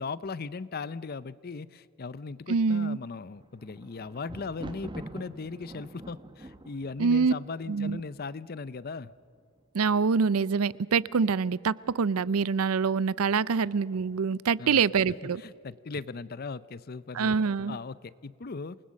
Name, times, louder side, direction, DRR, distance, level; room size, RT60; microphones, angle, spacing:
voice 1, 0.0-9.1 14.6-14.8 15.2-17.3 17.7-18.8, left 4 dB, 45° left, 18 dB, 0.5 m, -38 dB
voice 2, 2.5-3.0 7.0-7.3 7.7-8.0 9.7-15.4 17.1-17.8, right 5 dB, 80° right, 20 dB, 0.5 m, -25 dB
Thunder, 3.3-8.4 9.1-9.6 9.9-10.0, right 1 dB, 20° right, 1.1 m, -45 dB
27.5 x 20.0 x 6.4 m, 2.3 s
head